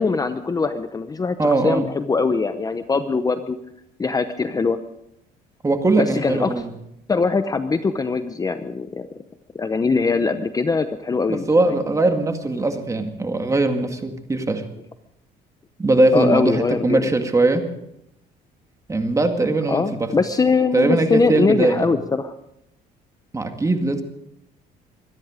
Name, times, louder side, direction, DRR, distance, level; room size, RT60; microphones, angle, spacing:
voice 1, 0.0-3.6 4.0-4.8 6.0-6.5 7.1-9.1 9.5-11.8 16.1-17.1 19.7-22.3, left 4 dB, 20° left, 9 dB, 0.8 m, -22 dB
voice 2, 1.4-1.9 5.6-6.7 11.3-14.6 15.8-17.6 18.9-20.1 20.7-21.9 23.3-24.0, right 2 dB, 20° right, 5 dB, 2.1 m, -20 dB
24.5 x 10.5 x 5.1 m, 0.80 s
cardioid pair, 110°, 17 cm